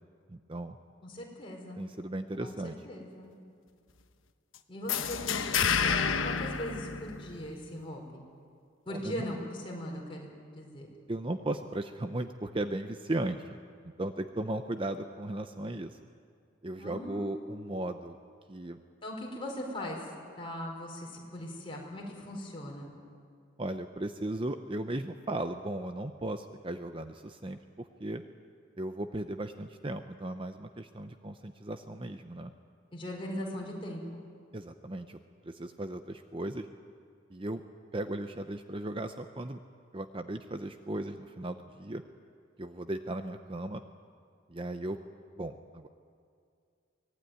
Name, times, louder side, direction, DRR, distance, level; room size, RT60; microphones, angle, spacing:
voice 1, 0.3-0.8 1.8-2.8 8.9-9.2 11.1-13.6 14.0-16.0 16.6-18.2 18.5-18.8 23.6-28.2 28.8-32.5 34.5-35.2 35.4-36.7 37.3-37.6 37.9-39.6 39.9-42.0 42.6-43.8 44.5-45.0 45.4-45.9, right 1 dB, 25° right, 8 dB, 0.7 m, -36 dB
voice 2, 1.0-1.8 2.4-3.3 4.7-8.3 8.8-10.3 10.5-10.9 16.8-17.5 19.0-20.1 20.4-22.9 32.9-34.2, equal, 25° left, -2 dB, 5.1 m, -40 dB
sound 1, 4.9-7.6, left 6 dB, 85° left, 1.1 m, -29 dB
24.0 x 18.5 x 9.5 m, 2.3 s
head